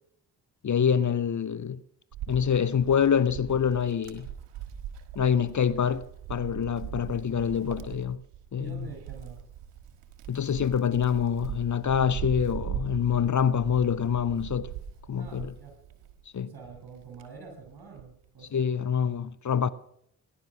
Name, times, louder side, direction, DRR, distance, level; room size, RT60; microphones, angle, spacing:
voice 1, 0.6-1.8 2.3-4.3 5.2-8.2 8.5-8.9 10.3-14.7 15.1-15.5 16.3-16.5 18.5-19.7, left 7 dB, 40° left, 0.8 m, -26 dB
Wind, 2.1-16.2 16.7-18.2, right 9 dB, 75° right, 1.7 m, -40 dB
voice 2, 8.6-9.4 15.1-15.8 16.4-18.7, right 4 dB, 60° right, 6.5 m, -46 dB
20.0 x 11.0 x 6.0 m
hypercardioid pair, 40°, 43 cm